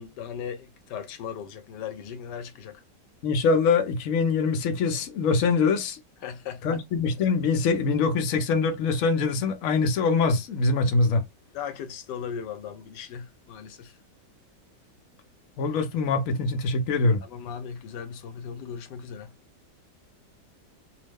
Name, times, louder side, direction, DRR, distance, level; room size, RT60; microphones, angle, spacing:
voice 1, 0.0-2.8 6.2-6.8 11.5-13.9 17.2-19.3, left 7 dB, 80° left, 1.3 m, -38 dB
voice 2, 3.2-6.0 6.6-11.2 15.6-17.2, left 4 dB, 65° left, 0.9 m, -23 dB
3.0 x 2.0 x 3.3 m
omnidirectional pair, 1.9 m